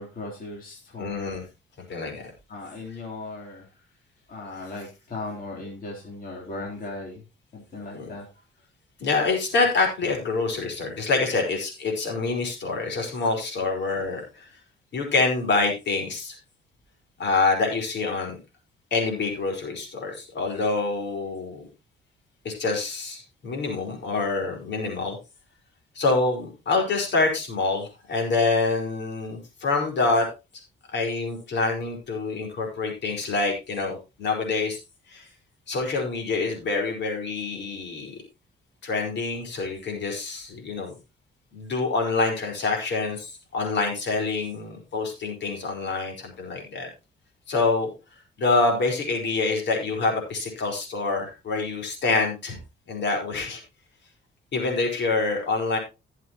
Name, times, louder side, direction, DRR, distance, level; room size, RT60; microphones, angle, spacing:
voice 1, 0.0-1.4 2.5-3.8 4.3-7.2 7.5-8.4 26.7-26.8, left 2 dB, 45° left, -2 dB, 3.6 m, -37 dB
voice 2, 1.0-1.4 1.9-2.3 7.9-8.1 9.0-14.5 14.9-16.4 17.2-18.4 18.9-21.7 22.4-25.2 25.9-30.3 30.9-34.8 35.1-35.3 35.7-38.2 38.8-40.9 41.5-46.9 47.5-47.9 48.4-52.6 52.9-53.6 54.5-55.8, left 3 dB, 65° left, 2 dB, 4.8 m, -26 dB
16.5 x 7.5 x 3.0 m, 0.27 s
cardioid pair, 90°, 20 cm